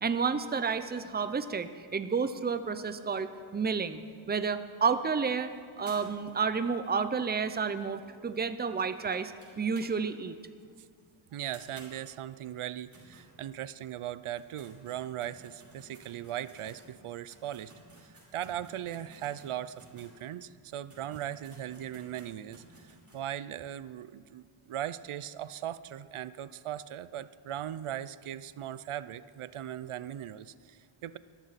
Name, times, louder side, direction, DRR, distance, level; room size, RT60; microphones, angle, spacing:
voice 1, 0.0-4.0 4.3-10.4, right 5 dB, 20° right, 11 dB, 0.6 m, -31 dB
sound 1, 5.8-10.3 10.6-10.7 11.0-11.1 11.5-13.8 14.2-20.2 20.6-20.7 20.9-23.2, right 1 dB, 35° right, 5.4 m, -56 dB
voice 2, 11.3-17.7 18.0-31.2, right 11 dB, 90° right, 16 dB, 0.6 m, -39 dB
23.0 x 14.5 x 4.1 m, 2.1 s
wide cardioid pair, 145°, 49 cm